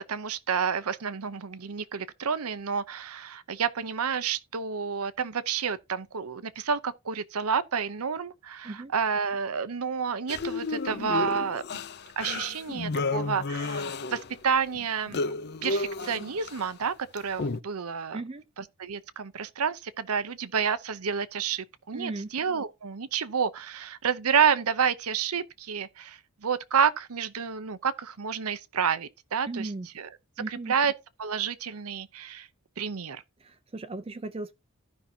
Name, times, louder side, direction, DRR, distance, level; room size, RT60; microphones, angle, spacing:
voice 1, 0.1-11.8 12.2-15.2 15.6-18.2 18.6-29.7 30.0-30.1 30.5-30.9 31.2-32.5 32.8-33.2, right 6 dB, 90° right, 0.7 m, -29 dB
sound 1, 10.3-14.4 14.7-16.7 17.2-17.6, left 3 dB, 50° left, 0.5 m, -32 dB
voice 2, 18.1-18.4 21.9-22.3 29.5-29.9 30.4-30.7 33.4-34.5, right 2 dB, 25° right, 0.4 m, -36 dB
15.0 x 5.6 x 2.7 m
head